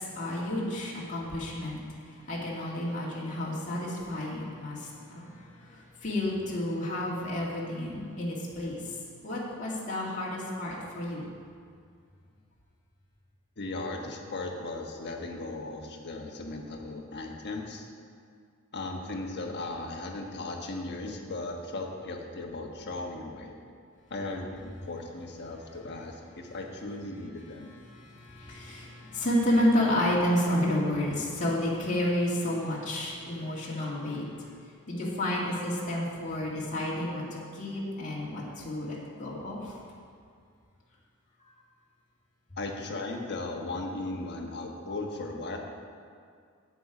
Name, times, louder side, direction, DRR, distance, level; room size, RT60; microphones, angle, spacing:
voice 1, 0.0-1.8 2.1-5.3 5.6-8.8 9.2-11.2 27.9-34.3 34.9-39.8, left 1 dB, 35° left, -6 dB, 2.2 m, -30 dB
voice 2, 13.6-17.9 18.7-23.6 24.1-27.7 42.6-45.6, left 2 dB, 50° left, 1 dB, 1.3 m, -37 dB
11.0 x 8.5 x 5.0 m, 2.2 s
head